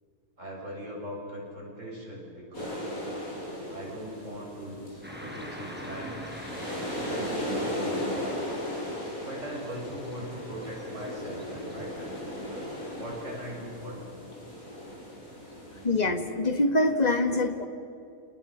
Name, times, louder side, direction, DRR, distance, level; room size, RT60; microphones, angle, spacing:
voice 1, 0.4-2.9 3.7-8.2 9.2-12.2 12.9-14.2, equal, 60° right, -2 dB, 8.0 m, -40 dB
sound 1, 2.5-15.9, left 1 dB, 90° left, 7.5 m, -36 dB
Car passing by / Traffic noise roadway noise, 5.0-11.9, equal, 5° right, 4.9 m, -45 dB
voice 2, 15.8-17.7, left 2 dB, 30° left, 6 dB, 1.9 m, -24 dB
29.0 x 28.5 x 6.0 m, 2.5 s
omnidirectional pair, 1.4 m